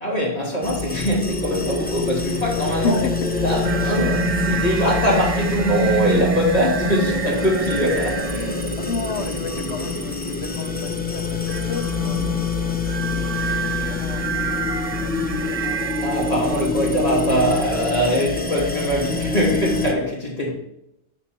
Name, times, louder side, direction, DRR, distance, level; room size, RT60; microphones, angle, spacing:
voice 1, 0.0-3.0 3.4-8.7 16.0-20.5, equal, 35° left, 2.8 m, -22 dB
sound 1, 0.6-19.9, left 4 dB, 10° left, 0.9 m, -26 dB
voice 2, 2.7-3.3 8.8-14.7 15.0-16.1, left 5 dB, 85° left, 1.1 m, -33 dB
Mallet percussion, 3.2-7.3, left 11 dB, 55° left, 0.5 m, -39 dB
sound 2, 3.6-8.7 9.1-10.0 11.5-16.7, right 6 dB, 45° right, 0.5 m, -27 dB
7.4 x 6.2 x 4.4 m
omnidirectional pair, 1.1 m